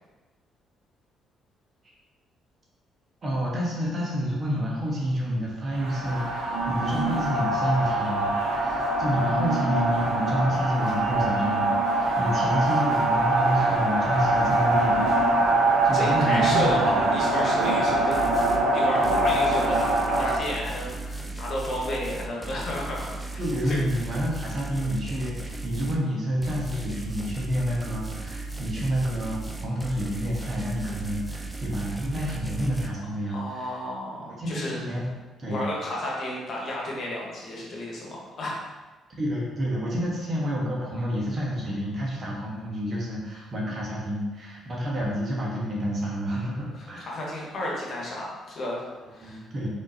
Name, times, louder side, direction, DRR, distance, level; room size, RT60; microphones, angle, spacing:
voice 1, 3.2-17.2 23.4-33.8 34.2-35.1 35.4-35.6 39.2-47.1 49.0-49.7, equal, 45° right, -3 dB, 1.3 m, -29 dB
sound 1, 5.7-20.4, right 2 dB, 75° right, 0.6 m, -23 dB
voice 2, 15.9-18.2 18.7-23.4 23.7-23.8 33.3-34.8 35.5-38.1 38.4-38.5 47.1-48.8 49.1-49.4, left 1 dB, 55° left, -3 dB, 1.2 m, -32 dB
sound 2, 18.1-18.6 19.0-26.0 26.4-32.9, right 2 dB, 10° right, 0.5 m, -36 dB
3.7 x 3.6 x 2.8 m, 1.2 s
hypercardioid pair, 55°, 0 cm